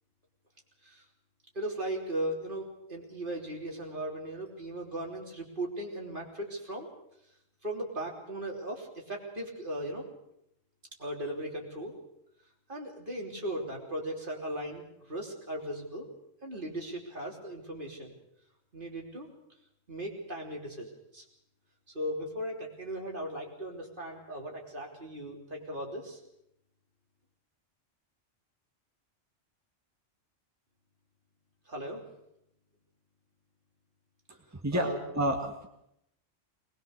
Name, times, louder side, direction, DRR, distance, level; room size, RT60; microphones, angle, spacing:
voice 1, 1.5-6.9 7.6-10.1 11.0-11.9 12.7-16.1 16.4-18.2 18.7-19.3 19.9-21.2 21.9-26.2 31.7-32.0 34.7-35.0, right 1 dB, 40° right, -1 dB, 3.6 m, -37 dB
voice 2, 34.6-35.7, right 1 dB, 15° right, 2 dB, 1.8 m, -30 dB
21.0 x 20.0 x 6.6 m, 0.79 s
omnidirectional pair, 1.3 m